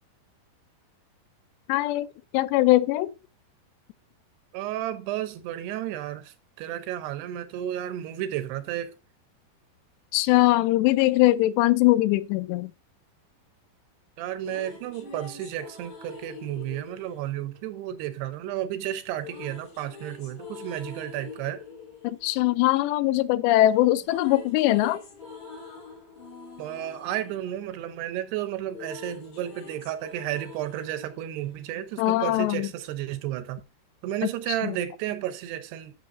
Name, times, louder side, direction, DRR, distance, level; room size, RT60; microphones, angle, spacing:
voice 1, 1.7-2.1 2.3-3.1 10.1-12.7 22.0-25.0 32.0-32.7 34.6-34.8, left 16 dB, 90° left, 2.8 m, -21 dB
voice 2, 4.5-8.9 14.2-21.6 26.6-33.6 34.0-35.9, right 12 dB, 80° right, 2.8 m, -32 dB
sound 1, 14.2-18.3 19.2-23.4 23.7-32.2, left 4 dB, 45° left, 3.3 m, -45 dB
11.0 x 7.0 x 2.6 m
omnidirectional pair, 4.8 m